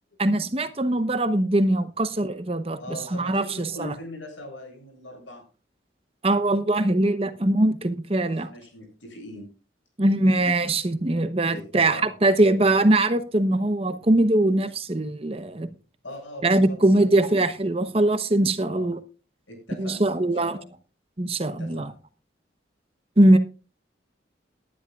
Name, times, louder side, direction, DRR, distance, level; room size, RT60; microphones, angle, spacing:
voice 1, 0.2-3.9 6.2-8.5 10.0-15.7 16.4-19.0 19.8-20.6 21.2-21.9 23.2-23.4, right 1 dB, 30° right, 0.8 m, -22 dB
voice 2, 2.8-5.4 8.1-9.5 11.5-12.1 16.0-17.2 18.7-18.9 19.5-20.1 20.4-20.7 21.4-21.9, left 1 dB, 85° left, 7.4 m, -41 dB
19.5 x 11.0 x 2.4 m
head